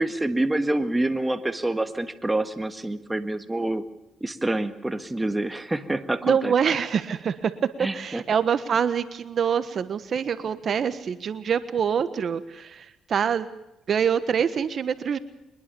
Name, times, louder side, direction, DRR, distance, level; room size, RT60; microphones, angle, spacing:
voice 1, 0.0-3.8 4.2-6.5 7.8-8.2, right 2 dB, 10° right, 9 dB, 1.7 m, -27 dB
voice 2, 6.2-7.5 7.9-13.5 13.9-15.2, right 7 dB, 55° right, 12 dB, 1.3 m, -25 dB
23.5 x 20.5 x 7.0 m, 0.90 s
cardioid pair, 90°, 0 cm